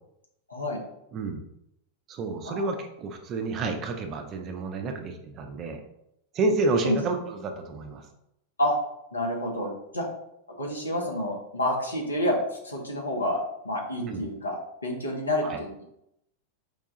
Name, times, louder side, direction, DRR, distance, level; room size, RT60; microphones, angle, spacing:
voice 1, 0.5-0.8 2.4-2.7 6.8-7.0 8.6-8.8 9.1-10.1 10.6-13.4 13.6-15.8, left 1 dB, 80° left, 0 dB, 0.8 m, -29 dB
voice 2, 1.1-1.4 2.1-5.8 6.3-8.0 14.0-14.2 15.4-15.6, right 3 dB, 30° right, 5 dB, 0.5 m, -29 dB
4.7 x 2.2 x 2.7 m, 0.81 s
figure-of-eight pair, 90°, 0 cm